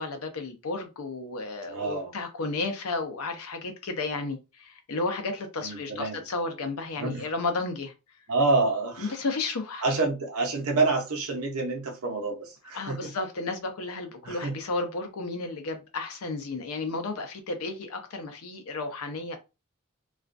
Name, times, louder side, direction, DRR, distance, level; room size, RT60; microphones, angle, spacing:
voice 1, 0.0-7.9 9.0-9.8 12.7-19.4, left 3 dB, 75° left, 0.6 m, -33 dB
voice 2, 1.7-2.1 5.6-6.2 7.0-7.3 8.3-9.1 9.8-13.1 14.2-14.6, right 3 dB, 75° right, 0.7 m, -27 dB
2.4 x 2.2 x 2.4 m
head